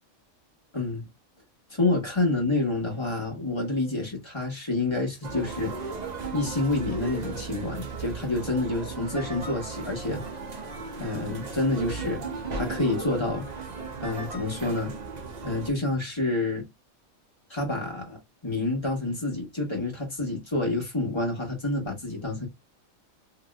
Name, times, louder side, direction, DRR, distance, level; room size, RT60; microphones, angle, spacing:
voice 1, 0.7-1.0 1.7-5.7 6.3-10.2 11.0-12.2 12.5-13.5 14.0-14.9 15.4-16.7 17.5-22.5, left 2 dB, 20° left, 1.5 m, -28 dB
sound 1, 5.2-15.7, right 4 dB, 40° right, 0.7 m, -36 dB
3.0 x 2.9 x 2.3 m
omnidirectional pair, 1.4 m